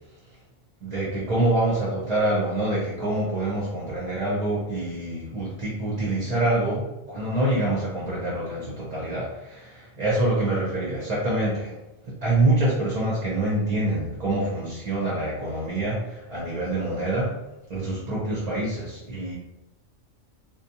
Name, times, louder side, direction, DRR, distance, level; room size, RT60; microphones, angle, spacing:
voice 1, 0.8-11.7 12.1-17.3 17.7-19.3, right 2 dB, 40° right, -6 dB, 0.6 m, -26 dB
2.6 x 2.2 x 2.8 m, 1.0 s
omnidirectional pair, 1.3 m